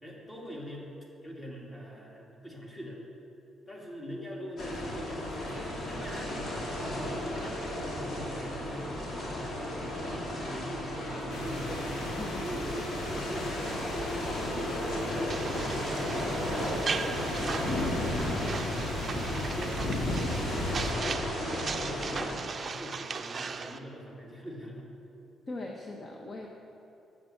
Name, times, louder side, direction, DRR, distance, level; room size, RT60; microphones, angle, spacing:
voice 1, 0.0-0.9 1.2-3.0 3.7-6.4 6.8-7.6 8.0-12.1 12.4-14.2 14.5-18.4 19.0-20.5 20.8-24.8, equal, 20° left, -2 dB, 2.2 m, -42 dB
sound 1, 4.6-22.4, left 1 dB, 60° left, 2.2 m, -35 dB
sound 2, 11.3-20.9, left 1 dB, 75° left, 1.4 m, -36 dB
voice 2, 12.2-12.7 13.2-13.4 18.2-18.8 25.5-26.5, left 2 dB, 35° left, 0 dB, 0.8 m, -41 dB
sound 3, 15.3-23.8, right 5 dB, 40° right, 0.4 m, -38 dB
7.4 x 7.4 x 6.4 m, 2.8 s
cardioid pair, 90°, 0 cm